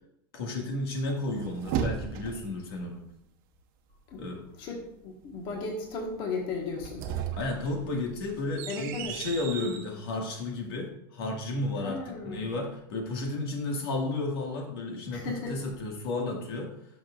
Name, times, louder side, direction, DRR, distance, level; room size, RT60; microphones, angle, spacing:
voice 1, 0.3-3.0 4.2-4.4 7.4-16.7, left 2 dB, 85° left, 1 dB, 1.9 m, -33 dB
sound 1, 1.1-2.6 6.6-9.9, right 8 dB, 55° right, 0.9 m, -35 dB
voice 2, 4.5-7.1 8.7-9.2 11.8-12.5 15.1-15.7, left 3 dB, 40° left, 1 dB, 1.4 m, -36 dB
11.5 x 6.1 x 2.5 m, 0.77 s
supercardioid pair, 160°, 12 cm